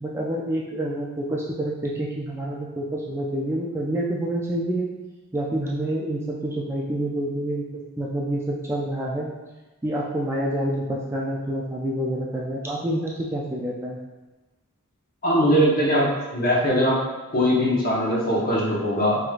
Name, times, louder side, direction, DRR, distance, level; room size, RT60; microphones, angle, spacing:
voice 1, 0.0-4.9 5.3-7.6 8.0-9.3 9.8-14.0, right 1 dB, 10° right, -4 dB, 0.3 m, -27 dB
voice 2, 15.2-17.0 17.3-19.2, equal, 40° left, -5 dB, 1.0 m, -21 dB
4.6 x 2.9 x 2.4 m, 1.1 s
head